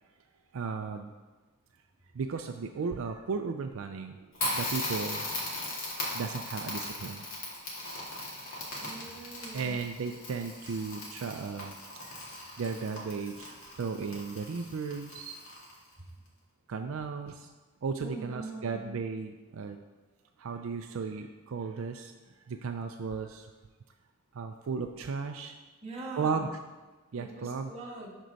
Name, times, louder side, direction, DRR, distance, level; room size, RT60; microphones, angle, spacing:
voice 1, 0.5-1.1 2.1-4.3 4.5-5.3 6.1-7.3 8.7-9.2 9.5-12.2 12.5-15.3 16.7-17.5 17.8-19.8 20.4-22.1 22.5-23.5 24.3-25.6 26.1-26.5 27.1-27.7, right 5 dB, 70° right, 6 dB, 0.4 m, -35 dB
Crackle, 4.3-15.9, left 1 dB, 70° left, 2.3 m, -38 dB
voice 2, 8.8-9.8 16.0-16.1 18.0-18.9 25.8-26.4 27.1-28.2, right 2 dB, 30° right, -3 dB, 1.5 m, -43 dB
11.5 x 4.5 x 4.0 m, 1.2 s
head